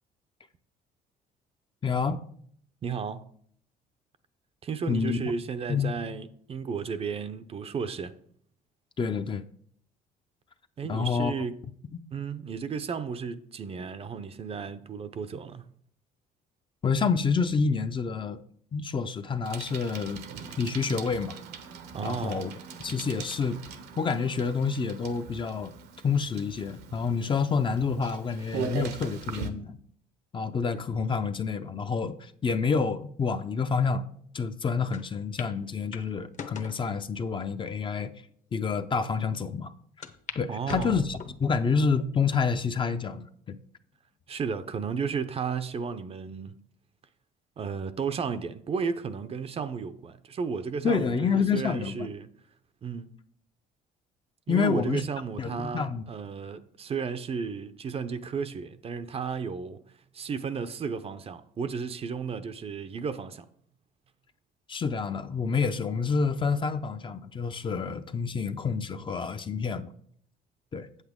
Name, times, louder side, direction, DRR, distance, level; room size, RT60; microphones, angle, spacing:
voice 1, 1.8-2.2 4.9-5.2 5.7-6.0 9.0-9.4 10.8-11.3 11.9-12.0 16.8-18.4 18.7-20.2 20.6-21.4 22.0-22.5 22.8-23.6 24.0-25.7 26.0-29.8 30.3-34.1 34.3-38.1 38.5-39.7 40.3-43.6 50.8-52.1 54.5-55.0 55.4-56.0 64.7-69.9 70.7-70.9, left 5 dB, 30° left, 0.5 m, -28 dB
voice 2, 2.8-3.3 4.6-8.1 10.8-11.6 12.1-15.7 21.9-22.4 40.5-41.0 44.3-46.6 47.6-52.3 52.8-53.1 54.5-59.8 60.1-63.5, right 6 dB, 35° right, 0.6 m, -33 dB
Bicycle, 19.4-29.5, right 6 dB, 75° right, 1.0 m, -40 dB
sound 1, 34.9-35.0 35.4-35.5 35.9-36.8 37.5-37.6 38.3-38.4 38.7-38.8 40.0-40.4 40.7-41.4 42.0-42.4 43.0-43.1 44.2-44.6, left 6 dB, 45° left, 0.9 m, -40 dB
8.1 x 8.0 x 3.6 m
cardioid pair, 110°, 17 cm